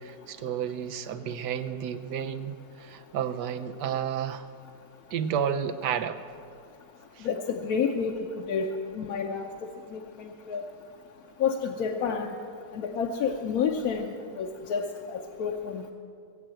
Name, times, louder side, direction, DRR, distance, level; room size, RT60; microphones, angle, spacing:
voice 1, 0.0-4.4 5.1-6.2 7.2-7.3, right 8 dB, 90° right, 8 dB, 1.4 m, -31 dB
voice 2, 7.2-8.7 8.9-9.5 9.9-10.6 11.4-12.3 12.7-15.9, left 6 dB, 65° left, 1 dB, 1.2 m, -30 dB
20.5 x 7.9 x 7.6 m, 2.4 s
omnidirectional pair, 1.8 m